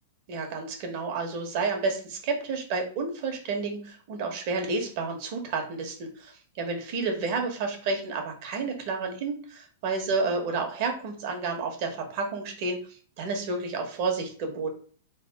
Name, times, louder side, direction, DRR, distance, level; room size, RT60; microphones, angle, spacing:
voice 1, 0.3-12.8 13.2-14.7, right 4 dB, 50° right, 3 dB, 1.3 m, -30 dB
3.8 x 3.4 x 3.6 m, 0.43 s
supercardioid pair, 150°, 0 cm